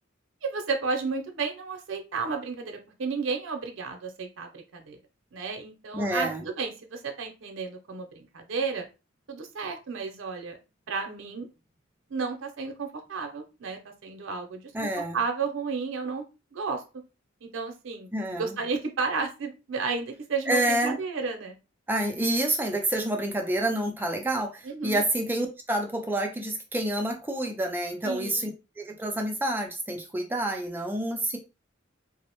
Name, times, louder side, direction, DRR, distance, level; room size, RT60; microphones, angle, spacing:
voice 1, 0.4-5.0 5.3-8.9 9.3-10.6 10.9-11.5 12.1-14.9 15.1-16.2 16.5-16.8 17.4-18.1 18.3-21.6 24.7-25.0 28.0-28.5, right 4 dB, 70° right, 4 dB, 0.6 m, -32 dB
voice 2, 5.9-6.4 14.7-15.2 18.1-18.6 20.5-21.0 21.9-28.5 28.8-31.4, right 1 dB, 10° right, 3 dB, 0.3 m, -28 dB
2.4 x 2.0 x 2.9 m, 0.29 s
head